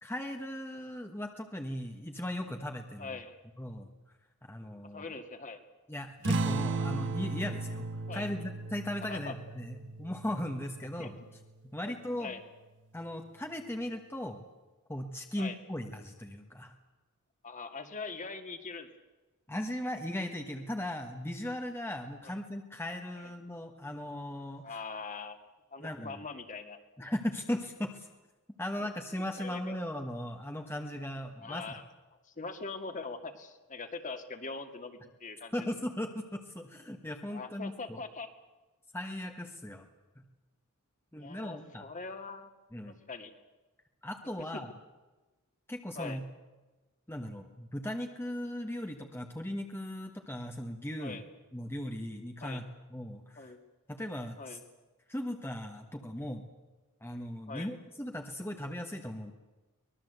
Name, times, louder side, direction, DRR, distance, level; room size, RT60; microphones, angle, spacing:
voice 1, 0.0-3.1 3.6-3.9 4.4-5.1 5.9-11.1 11.6-12.4 12.9-14.4 14.9-16.7 19.5-24.8 25.8-26.2 27.0-28.1 28.6-31.7 35.5-38.0 38.9-39.9 40.2-40.3 41.1-41.9 42.7-43.0 44.0-44.7 45.7-46.2 47.1-51.2 51.5-53.5 53.9-54.6 55.1-56.4 57.0-59.3, left 1 dB, 10° left, 4 dB, 1.4 m, -38 dB
voice 2, 3.0-3.4 4.9-5.6 8.1-8.3 9.1-9.4 11.0-11.1 11.9-12.4 15.4-15.6 17.4-18.9 22.2-22.3 24.6-25.4 25.7-27.1 28.8-28.9 29.4-29.8 31.4-31.8 32.2-35.5 37.3-38.3 41.2-42.5 43.1-43.3 46.0-46.2 51.0-51.2 52.4-52.6 53.4-53.6 54.4-54.6 57.5-57.7, left 4 dB, 35° left, 7 dB, 2.1 m, -42 dB
sound 1, 6.2-11.3, right 3 dB, 55° right, 1.8 m, -35 dB
24.0 x 20.5 x 8.1 m, 1.2 s
head